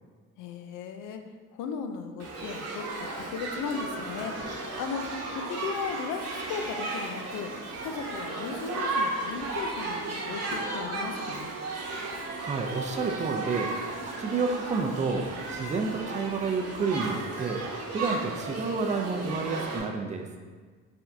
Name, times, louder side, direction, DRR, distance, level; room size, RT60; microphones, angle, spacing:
voice 1, 0.4-1.2 1.5-4.3 4.8-7.5 7.8-11.5, left 6 dB, 85° left, 6 dB, 0.5 m, -36 dB
Shout / Human group actions, 2.2-19.8, right 2 dB, 55° right, 0.9 m, -34 dB
voice 2, 12.2-13.7 14.0-17.6 17.9-20.3, right 4 dB, 25° right, 3 dB, 0.4 m, -30 dB
4.5 x 3.5 x 2.6 m, 1.5 s
cardioid pair, 90°, 30 cm